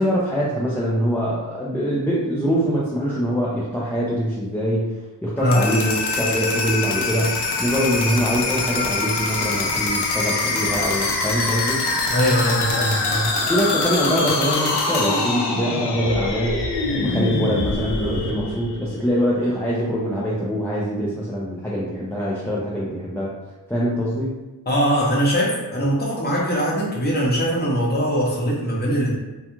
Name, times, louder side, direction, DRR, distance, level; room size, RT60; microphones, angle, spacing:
voice 1, 0.0-4.9 5.2-11.8 12.8-12.9 13.4-16.6 16.9-23.3 23.7-24.3, equal, 5° left, -7 dB, 0.4 m, -23 dB
sound 1, 5.4-19.2, left 3 dB, 70° left, 0.5 m, -24 dB
voice 2, 12.1-13.2 24.7-29.1, equal, 25° left, -4 dB, 0.8 m, -21 dB
2.4 x 2.3 x 2.9 m, 1.1 s
wide cardioid pair, 65°, 42 cm